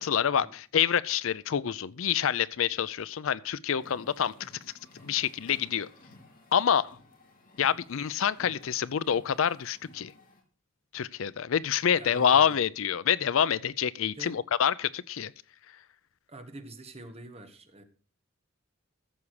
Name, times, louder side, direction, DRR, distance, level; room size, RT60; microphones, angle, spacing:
voice 1, 0.0-4.5 5.0-5.9 6.5-7.0 7.6-10.1 10.9-15.3, left 8 dB, 65° left, 0.5 m, -27 dB
sound 1, 3.7-10.4, left 2 dB, 45° left, 3.5 m, -55 dB
voice 2, 12.0-12.6 14.0-14.4 16.3-17.8, right 1 dB, 30° right, 1.6 m, -46 dB
15.0 x 7.2 x 4.8 m
head